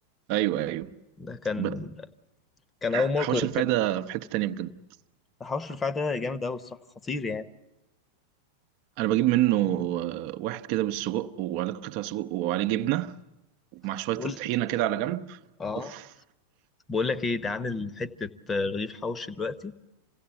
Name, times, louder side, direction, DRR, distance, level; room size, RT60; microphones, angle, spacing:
voice 1, 0.3-0.9 1.6-1.8 2.9-4.7 9.0-13.1 13.7-15.4 15.8-16.1, right 14 dB, 45° right, 0.8 m, -27 dB
voice 2, 1.2-2.0 2.8-3.7 5.4-6.8 7.0-7.5 14.1-14.4 15.6-15.9 16.9-19.7, left 4 dB, 15° left, 1.0 m, -30 dB
27.5 x 17.0 x 8.1 m
figure-of-eight pair, 90°, 0 cm